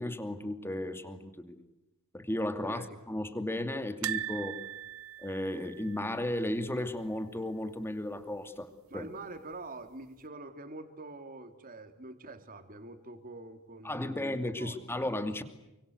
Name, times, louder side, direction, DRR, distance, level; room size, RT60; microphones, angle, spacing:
voice 1, 0.0-1.7 2.1-4.6 5.2-9.1 13.8-15.4, left 1 dB, 10° left, 8 dB, 2.6 m, -34 dB
sound 1, 4.0-7.1 7.3-7.6 7.8-7.9 9.1-9.7 10.2-10.3, right 10 dB, 65° right, 1.1 m, -40 dB
voice 2, 8.9-15.0, right 2 dB, 40° right, 7 dB, 3.5 m, -46 dB
29.5 x 25.0 x 8.1 m, 0.95 s
head